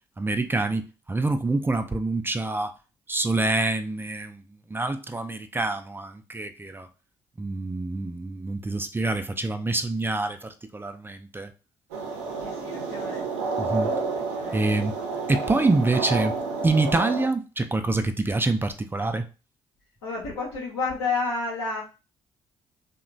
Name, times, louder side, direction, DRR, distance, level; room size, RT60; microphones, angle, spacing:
voice 1, 0.2-2.7 3.1-4.4 4.7-6.9 7.4-11.5 13.6-13.9 14.5-14.9 15.3-16.4 16.6-19.3, right 2 dB, 15° right, 0.4 m, -26 dB
sound 1, 11.9-17.3, right 4 dB, 75° right, 0.5 m, -30 dB
voice 2, 12.4-13.3 14.1-14.6 20.0-21.8, left 4 dB, 85° left, 0.8 m, -30 dB
2.9 x 2.1 x 2.5 m
hypercardioid pair, 45°, 14 cm